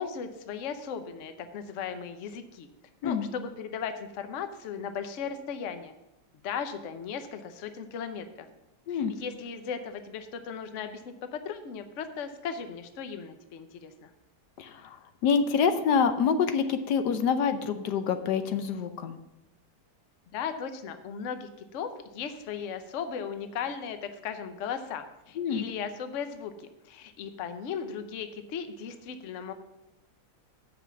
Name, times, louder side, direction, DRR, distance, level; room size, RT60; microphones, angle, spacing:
voice 1, 0.0-2.7 3.0-5.9 6.4-8.5 8.9-14.1 20.3-21.9 22.1-29.5, left 7 dB, 55° left, 8 dB, 1.0 m, -37 dB
voice 2, 14.6-15.0 15.2-19.2 25.4-25.7, left 6 dB, 80° left, 9 dB, 1.3 m, -26 dB
7.9 x 5.8 x 7.0 m, 0.93 s
omnidirectional pair, 1.8 m